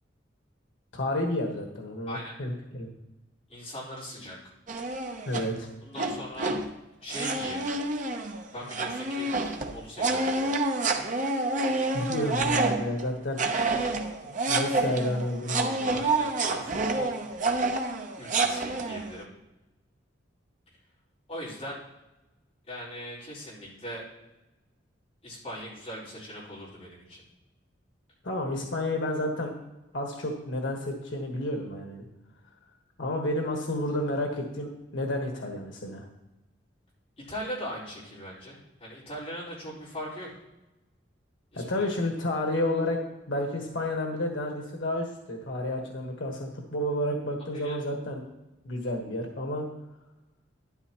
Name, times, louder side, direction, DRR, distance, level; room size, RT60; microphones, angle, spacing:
voice 1, 0.9-2.9 5.2-5.7 11.7-13.7 14.5-16.0 28.2-29.5 29.9-32.0 33.0-36.1 41.5-43.0 43.3-48.2 48.6-49.7, left 1 dB, 85° left, 1 dB, 1.5 m, -31 dB
voice 2, 3.5-4.4 5.8-6.6 7.0-7.7 8.5-10.6 13.7-13.9 15.8-17.1 18.2-19.3 21.3-21.8 22.7-24.0 25.2-27.2 37.2-40.3 41.5-41.8 47.5-47.7, equal, 35° left, -8 dB, 4.5 m, -40 dB
sound 1, 4.7-5.5 6.0-6.7 7.1-13.0 13.4-19.1, right 3 dB, 40° right, 0.8 m, -28 dB
12.5 x 11.0 x 3.1 m, 1.0 s
head